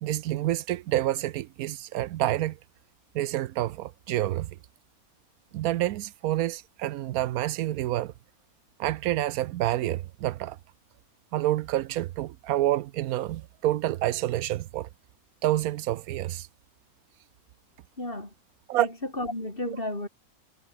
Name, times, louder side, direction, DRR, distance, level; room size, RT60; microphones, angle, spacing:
voice 1, 0.0-2.6 3.1-4.5 5.5-8.1 8.8-10.6 11.3-14.9 15.4-16.5 18.7-18.9 19.7-19.8, right 14 dB, 80° right, 1.1 m, -28 dB
voice 2, 18.0-18.3 18.8-20.1, left 1 dB, 40° left, 5.8 m, -33 dB
omnidirectional pair, 1.5 m